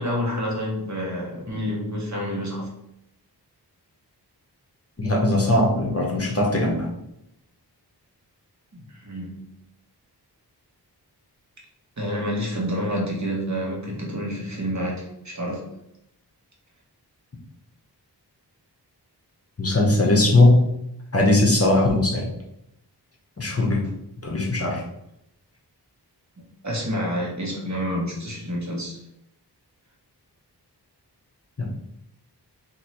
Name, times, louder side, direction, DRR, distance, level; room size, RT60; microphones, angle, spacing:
voice 1, 0.0-2.7 8.7-9.4 12.0-15.6 26.6-29.0, equal, 45° right, -2 dB, 1.1 m, -28 dB
voice 2, 5.0-6.9 19.6-20.6 21.1-22.3 23.4-23.8 24.2-24.9 31.6-31.7, left 2 dB, 35° left, -1 dB, 0.8 m, -19 dB
3.0 x 2.6 x 4.2 m, 0.80 s
wide cardioid pair, 70°, 41 cm